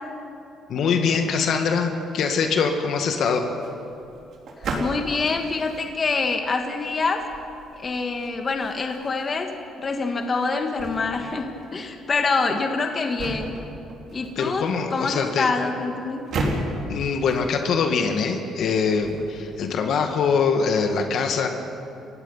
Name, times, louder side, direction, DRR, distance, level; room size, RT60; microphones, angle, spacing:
voice 1, 0.7-3.5 14.4-15.5 16.9-21.5, left 5 dB, 65° left, 4 dB, 2.0 m, -23 dB
sound 1, 3.5-19.7, right 2 dB, 60° right, 3.8 m, -36 dB
voice 2, 4.6-7.2 7.7-9.5 9.8-13.6 14.1-14.6 14.9-16.2, left 4 dB, 35° left, 4 dB, 1.8 m, -26 dB
30.0 x 16.0 x 5.7 m, 2.8 s
cardioid pair, 100°, 0 cm